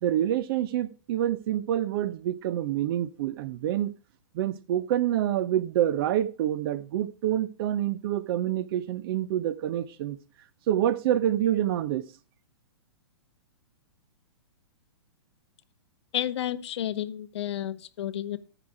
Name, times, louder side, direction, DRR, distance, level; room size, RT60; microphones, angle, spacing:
voice 1, 0.0-3.9 4.3-10.2 10.7-12.0, right 11 dB, 50° right, 0.7 m, -27 dB
voice 2, 16.1-18.4, left 11 dB, 65° left, 0.9 m, -31 dB
14.0 x 5.0 x 4.8 m
hypercardioid pair, 125°, 16 cm